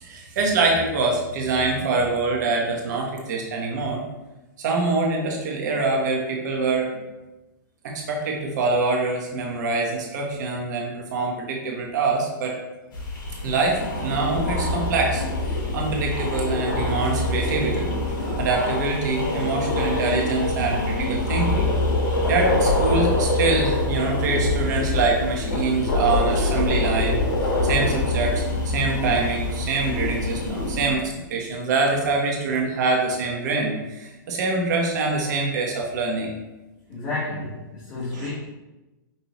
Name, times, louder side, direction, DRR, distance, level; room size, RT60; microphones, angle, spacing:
voice 1, 0.0-4.0 4.6-6.9 7.8-12.5 13.4-15.2 15.7-21.7 22.3-27.2 27.6-36.3 38.1-38.3, right 3 dB, 60° right, -1 dB, 1.1 m, -25 dB
sound 1, 12.9-30.9, left 2 dB, 70° left, 1.3 m, -25 dB
voice 2, 36.9-38.3, left 2 dB, 30° left, -10 dB, 1.5 m, -31 dB
5.5 x 2.7 x 2.9 m, 1.1 s
hypercardioid pair, 145°, 11 cm